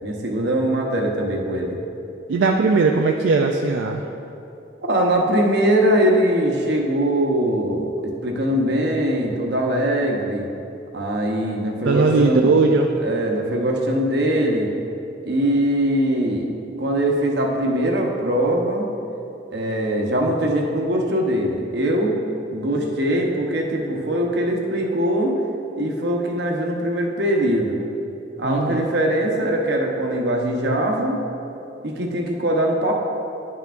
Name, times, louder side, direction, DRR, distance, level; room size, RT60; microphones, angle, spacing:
voice 1, 0.0-1.8 4.8-10.5 10.9-12.5 13.0-14.7 15.2-16.5 16.8-18.9 19.5-22.2 22.5-25.3 25.7-27.8 28.4-31.2 31.8-32.9, right 1 dB, 60° right, 0 dB, 0.9 m, -21 dB
voice 2, 2.3-4.1 11.8-12.9 22.8-22.9 28.4-28.9, right 4 dB, 80° right, 2 dB, 0.4 m, -19 dB
10.5 x 5.7 x 2.5 m, 2.7 s
head